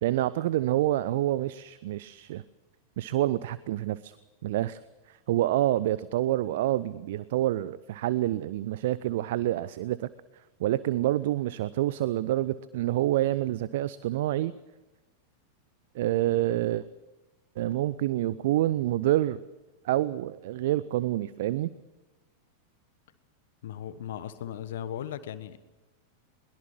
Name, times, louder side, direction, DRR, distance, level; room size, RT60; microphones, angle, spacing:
voice 1, 0.0-2.4 3.0-4.1 4.4-4.8 5.1-10.1 10.6-14.5 15.9-16.8 17.6-19.4 19.8-21.7, right 14 dB, 55° right, 18 dB, 0.6 m, -27 dB
voice 2, 23.6-25.6, left 10 dB, 55° left, 13 dB, 1.3 m, -37 dB
22.0 x 21.5 x 6.3 m, 1.1 s
figure-of-eight pair, 90°, 0 cm